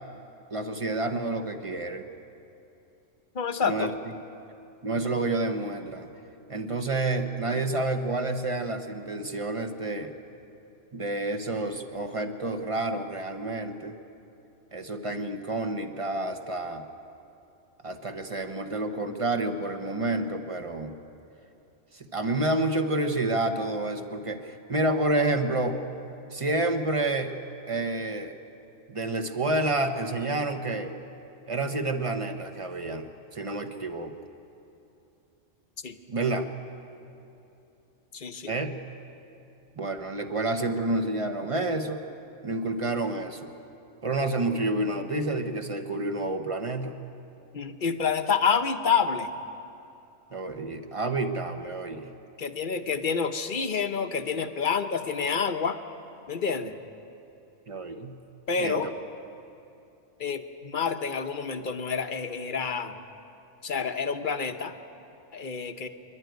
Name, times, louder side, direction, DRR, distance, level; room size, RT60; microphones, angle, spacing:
voice 1, 0.5-2.0 3.6-3.9 4.8-6.1 6.5-10.1 10.9-14.0 14.7-16.8 17.8-20.9 21.9-25.8 26.3-27.3 27.7-28.4 28.9-30.9 31.5-34.1 36.1-36.5 38.5-38.8 39.8-42.0 42.4-43.5 44.0-47.0 50.3-52.1 57.7-58.2 58.6-58.8, right 2 dB, 30° right, 6 dB, 1.1 m, -29 dB
voice 2, 3.3-3.9 35.8-36.0 38.1-38.5 47.5-49.3 52.4-55.8 56.3-56.7 58.5-58.9 60.2-63.0 63.6-64.7 65.3-65.9, left 6 dB, 45° left, 8 dB, 0.9 m, -28 dB
26.0 x 11.5 x 9.3 m, 2.8 s
omnidirectional pair, 1.3 m